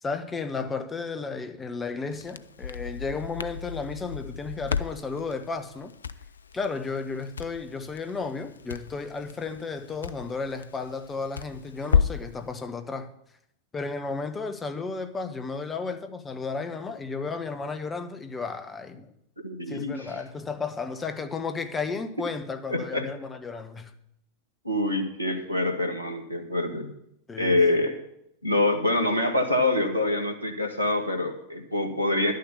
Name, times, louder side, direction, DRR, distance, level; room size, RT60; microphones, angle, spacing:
voice 1, 0.0-5.9 6.5-13.1 13.7-19.1 19.7-23.9 27.3-27.6, left 4 dB, 15° left, 1.1 m, -33 dB
Crackle, 2.1-12.3, left 6 dB, 70° left, 0.4 m, -33 dB
voice 2, 19.4-20.1 22.7-23.0 24.6-26.9 27.4-28.0 28.4-32.3, left 2 dB, 90° right, 1.6 m, -25 dB
11.5 x 6.6 x 8.2 m
figure-of-eight pair, 90°, 0 cm